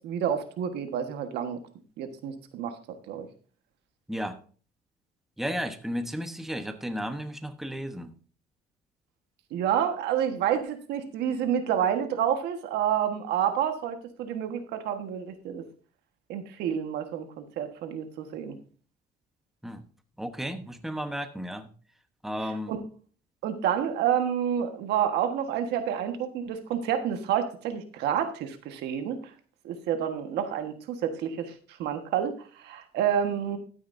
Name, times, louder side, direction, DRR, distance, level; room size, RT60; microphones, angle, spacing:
voice 1, 0.0-1.6 2.0-2.8 3.1-3.3 9.5-15.6 16.3-18.6 22.7-22.8 23.4-29.2 29.6-31.5 31.8-33.6, right 9 dB, 80° right, 7 dB, 1.5 m, -29 dB
voice 2, 5.4-8.1 19.6-19.8 20.2-21.7 22.2-22.7, equal, ahead, 8 dB, 1.1 m, -33 dB
12.5 x 9.4 x 2.6 m, 0.40 s
cardioid pair, 110°, 17 cm